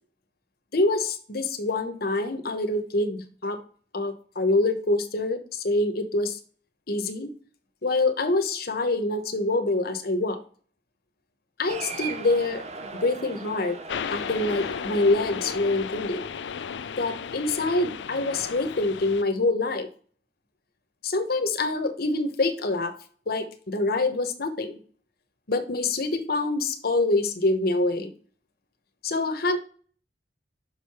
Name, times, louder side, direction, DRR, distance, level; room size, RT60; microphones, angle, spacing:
voice 1, 0.7-3.6 3.9-6.4 6.9-7.3 7.8-10.4 11.6-12.6 13.0-13.8 14.1-16.2 17.0-19.9 21.0-22.9 23.3-24.8 25.5-28.1 29.0-29.6, left 2 dB, 60° left, 8 dB, 1.1 m, -25 dB
Cheering, 11.7-16.4, right 4 dB, 40° right, 0.9 m, -40 dB
sound 1, 13.9-19.2, left 6 dB, 85° left, 0.4 m, -34 dB
6.4 x 4.8 x 4.7 m, 0.43 s
head